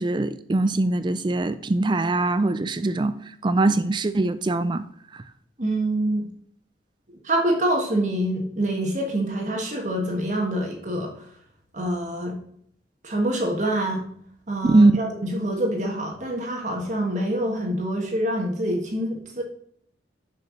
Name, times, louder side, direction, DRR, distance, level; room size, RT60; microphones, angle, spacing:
voice 1, 0.0-3.2 3.4-4.8 5.1-5.2 14.7-15.0, right 2 dB, 25° right, 12 dB, 0.4 m, -21 dB
voice 2, 5.6-6.3 7.2-11.1 11.7-12.4 13.0-14.0 14.5-19.4, right 1 dB, 45° right, 1 dB, 1.5 m, -26 dB
6.6 x 5.7 x 6.5 m, 0.67 s
head